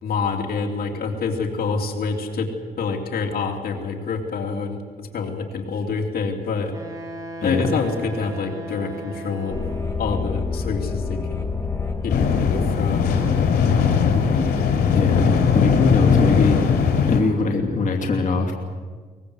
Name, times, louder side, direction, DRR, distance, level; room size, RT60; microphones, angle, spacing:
voice 1, 0.0-2.5 2.8-6.7 7.4-9.6 10.0-11.5 12.0-13.1, left 4 dB, 70° left, 3 dB, 3.2 m, -27 dB
Wind instrument woodwind instrument, 6.7-10.2, right 1 dB, 20° right, 3.9 m, -36 dB
voice 2, 7.4-7.8 14.9-15.3 15.5-16.6 17.1-18.5, left 4 dB, 50° left, 1 dB, 2.8 m, -22 dB
sound 1, 9.5-15.0, left 4 dB, 15° left, 2.0 m, -29 dB
sound 2, 12.1-17.2, left 6 dB, 90° left, 4.2 m, -19 dB
23.5 x 21.0 x 8.2 m, 1.5 s
cardioid pair, 115°, 16 cm